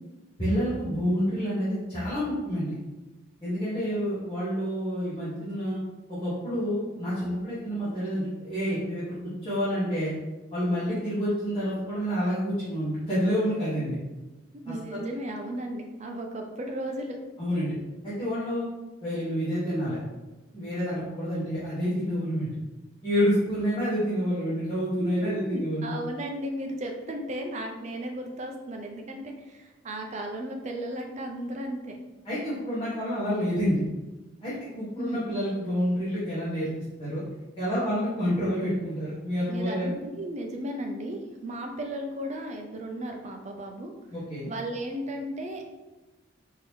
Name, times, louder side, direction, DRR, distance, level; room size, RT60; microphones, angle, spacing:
voice 1, 0.4-2.7 3.4-5.8 6.1-9.1 9.4-10.1 10.5-14.0 14.7-14.8 17.4-17.7 18.0-18.6 19.0-20.0 20.5-22.5 23.0-26.0 32.2-33.8 34.4-36.7 37.0-37.2 37.6-40.0 44.1-44.5, equal, 25° left, -12 dB, 1.0 m, -28 dB
voice 2, 14.5-17.2 25.0-32.0 35.0-35.2 39.5-43.9 44.5-45.6, right 1 dB, 35° right, 3 dB, 0.4 m, -35 dB
3.6 x 2.8 x 3.0 m, 1.1 s
head